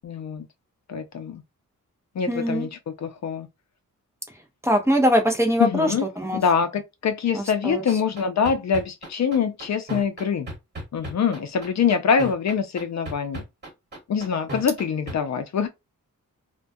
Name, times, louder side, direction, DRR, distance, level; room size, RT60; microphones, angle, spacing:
voice 1, 0.0-0.5 0.9-1.4 2.2-2.7 3.0-3.5 5.6-6.1 6.3-10.5 10.9-13.4 14.1-15.7, left 6 dB, 55° left, 0.5 m, -24 dB
voice 2, 2.3-2.7 4.6-5.9 6.2-6.4 7.3-7.8, equal, 10° right, 0.6 m, -22 dB
sound 1, 7.7-15.1, right 1 dB, 30° right, 1.3 m, -35 dB
2.3 x 2.1 x 2.5 m
wide cardioid pair, 100°, 32 cm